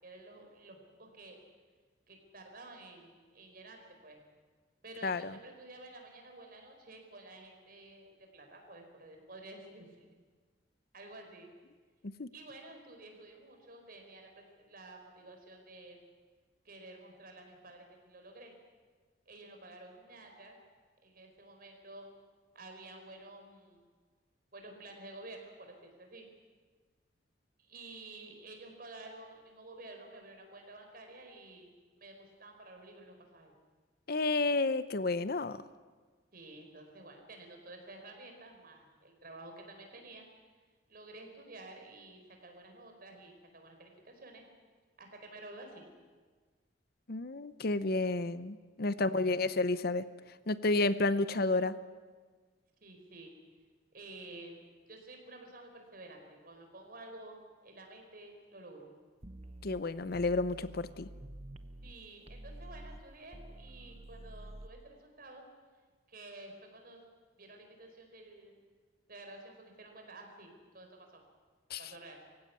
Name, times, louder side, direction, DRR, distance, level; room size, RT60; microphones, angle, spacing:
voice 1, 0.0-1.4 2.1-4.2 4.8-10.1 10.9-11.5 12.3-16.0 16.6-18.5 19.3-20.6 21.0-22.1 22.5-23.9 24.5-26.3 27.6-31.7 32.0-33.5 36.3-40.3 40.9-44.4 45.0-45.8 49.0-49.4 52.8-53.3 53.9-54.6 54.9-58.9 61.8-65.4 66.1-67.0 67.4-68.6 69.1-71.2 71.8-72.2, right 2 dB, 50° right, 3 dB, 4.8 m, -51 dB
voice 2, 34.1-35.6 47.1-50.0 50.5-51.7 59.6-61.1 71.7-71.8, left 2 dB, 55° left, 14 dB, 0.7 m, -31 dB
sound 1, 59.2-61.9 62.3-64.7, right 1 dB, 35° right, 0.9 m, -49 dB
23.0 x 16.0 x 9.6 m, 1.4 s
head